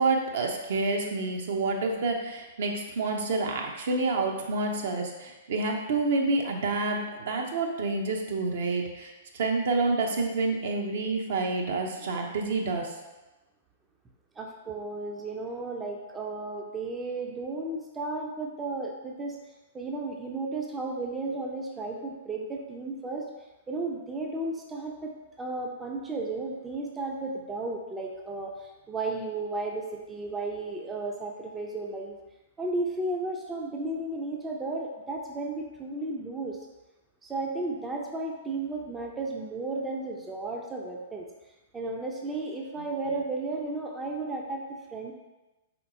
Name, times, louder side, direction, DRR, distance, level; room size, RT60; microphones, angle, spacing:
voice 1, 0.0-12.9, right 3 dB, 55° right, 2 dB, 0.6 m, -28 dB
voice 2, 14.4-19.4 19.7-23.2 23.7-25.1 25.4-32.2 32.6-36.6 37.2-41.3 41.7-45.1, right 2 dB, 15° right, 1 dB, 0.4 m, -34 dB
4.3 x 3.9 x 2.7 m, 1.1 s
figure-of-eight pair, 110°, 0 cm